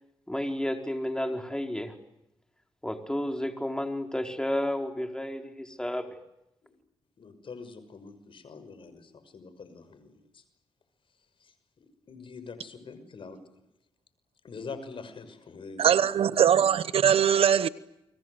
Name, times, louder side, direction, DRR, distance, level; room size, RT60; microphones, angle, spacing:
voice 1, 0.3-2.0 2.8-6.1, left 1 dB, 5° left, 4.6 m, -31 dB
voice 2, 7.2-10.4 11.4-13.4 14.4-16.0, left 4 dB, 60° left, 6.1 m, -44 dB
voice 3, 15.8-17.7, right 9 dB, 75° right, 1.1 m, -21 dB
30.0 x 23.5 x 8.1 m
cardioid pair, 55°, 10 cm